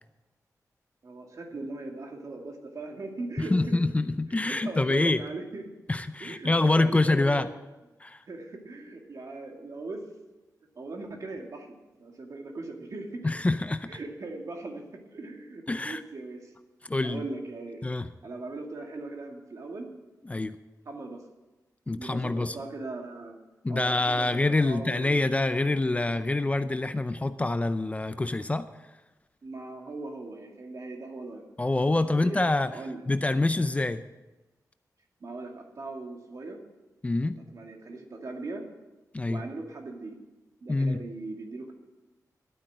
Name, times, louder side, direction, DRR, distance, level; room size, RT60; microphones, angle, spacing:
voice 1, 1.0-3.8 4.3-5.7 6.2-7.5 8.3-10.0 10.8-13.2 13.9-14.8 15.1-16.5 17.0-17.8 18.2-19.9 20.9-21.2 21.9-23.4 23.7-25.3 29.4-31.5 31.9-33.0 35.2-36.6 37.5-38.6 39.3-40.2 40.6-41.7, right 3 dB, 55° right, 2 dB, 2.3 m, -39 dB
voice 2, 3.4-5.2 5.9-7.5 8.0-8.2 13.2-13.9 15.7-16.0 16.9-17.2 17.8-18.1 20.2-20.6 21.9-22.6 23.6-28.7 31.6-32.7 33.1-34.0 37.0-37.4 39.1-39.4 40.7-41.0, left 2 dB, 20° left, 11 dB, 0.5 m, -26 dB
12.0 x 9.5 x 7.7 m, 1.1 s
wide cardioid pair, 105°, 7 cm